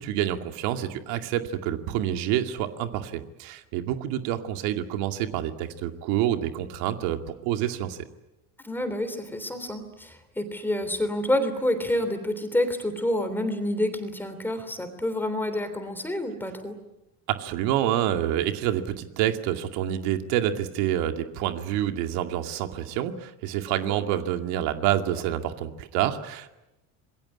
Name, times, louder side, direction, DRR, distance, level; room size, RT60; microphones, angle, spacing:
voice 1, 0.0-8.0 17.3-26.5, right 11 dB, 90° right, 6 dB, 2.4 m, -27 dB
voice 2, 8.6-16.7 23.9-24.0, left 1 dB, 5° left, 8 dB, 3.3 m, -28 dB
27.5 x 21.5 x 9.8 m, 0.97 s
cardioid pair, 160°, 39 cm